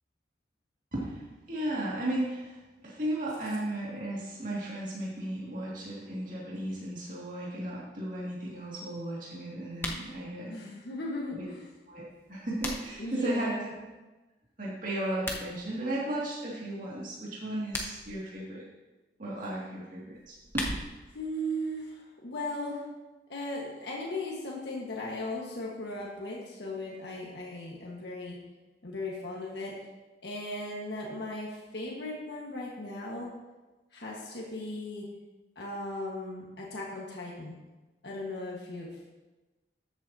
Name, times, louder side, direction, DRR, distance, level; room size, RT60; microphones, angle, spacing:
voice 1, 0.9-10.5 11.2-11.5 11.9-13.7 14.6-18.6 19.2-20.7, right 1 dB, 45° right, -6 dB, 2.3 m, -35 dB
sound 1, 9.7-10.1 12.1-13.1 15.1-15.5 17.5-18.1 20.1-21.1, left 1 dB, 15° left, 1.0 m, -37 dB
voice 2, 10.5-11.7 13.0-13.7 21.1-22.9 23.3-28.4 28.8-29.7 30.2-33.3 33.9-35.1 35.5-37.6 38.0-39.0, left 1 dB, 70° left, -3 dB, 1.5 m, -37 dB
13.5 x 8.0 x 2.8 m, 1.2 s
head